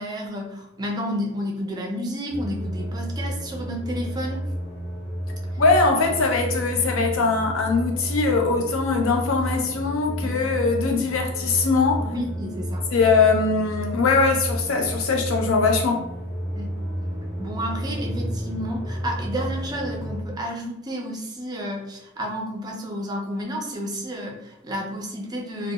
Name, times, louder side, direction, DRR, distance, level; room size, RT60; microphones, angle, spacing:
voice 1, 0.0-4.4 10.2-10.4 12.0-12.8 16.5-16.8 17.4-25.7, equal, 20° right, 0.4 m, -31 dB
sound 1, 2.3-20.2, equal, 35° left, 0.7 m, -31 dB
voice 2, 5.6-12.1 12.9-16.0, left 4 dB, 80° left, 0.5 m, -21 dB
2.7 x 2.0 x 2.2 m
head